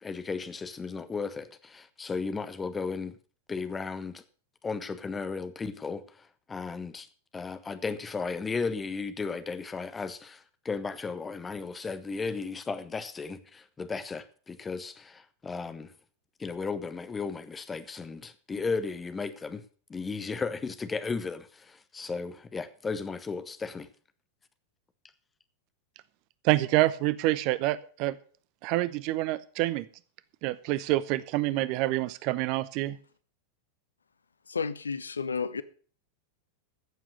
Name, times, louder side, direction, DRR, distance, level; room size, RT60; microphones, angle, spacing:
voice 1, 0.0-3.1 3.5-4.2 4.6-7.1 7.3-15.9 16.4-19.6 19.9-23.9, left 4 dB, 15° left, 1.2 m, -35 dB
voice 2, 26.4-28.2 28.6-29.9 30.4-33.0, right 17 dB, 45° right, 0.8 m, -27 dB
voice 3, 34.5-35.6, left 5 dB, 75° left, 0.7 m, -32 dB
14.5 x 7.5 x 6.6 m
figure-of-eight pair, 90°, 0 cm